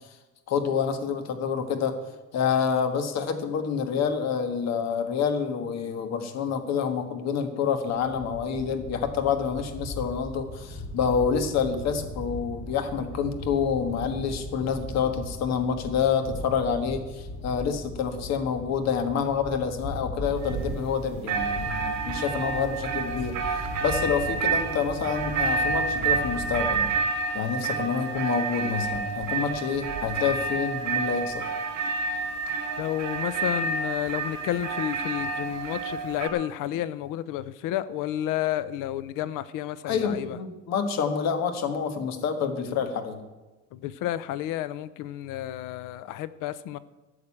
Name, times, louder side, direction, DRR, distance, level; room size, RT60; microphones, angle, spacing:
voice 1, 0.5-2.0 2.3-26.9 27.3-31.5 39.9-43.2, left 6 dB, 55° left, 7 dB, 1.6 m, -28 dB
sound 1, 7.9-26.9, left 1 dB, 35° left, 2.3 m, -38 dB
sound 2, 20.4-21.0 21.2-36.3, right 4 dB, 60° right, 3.6 m, -29 dB
voice 2, 32.8-40.4 43.7-46.8, left 12 dB, 85° left, 17 dB, 0.7 m, -31 dB
13.5 x 6.6 x 8.6 m, 1.2 s
cardioid pair, 165°, 31 cm